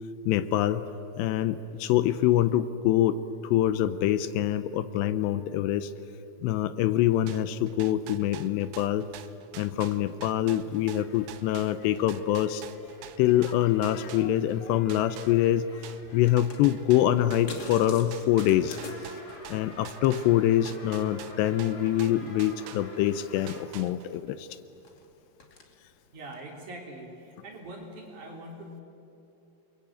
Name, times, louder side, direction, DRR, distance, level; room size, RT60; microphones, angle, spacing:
voice 1, 0.3-0.8 1.2-5.9 6.4-9.1 9.6-12.6 13.2-18.8 19.5-24.5, left 12 dB, 80° left, 13 dB, 2.9 m, -25 dB
sound 1, 7.3-14.6 14.9-23.1 23.5-24.3, right 12 dB, 75° right, 2.8 m, -46 dB
sound 2, 9.7-26.4, left 3 dB, 30° left, 1.9 m, -52 dB
sound 3, 10.9-17.8 18.2-23.6, left 2 dB, 50° left, 6.5 m, -50 dB
voice 2, 26.1-28.8, right 1 dB, 45° right, 0 dB, 4.8 m, -43 dB
29.0 x 22.0 x 8.8 m, 3.0 s
omnidirectional pair, 5.0 m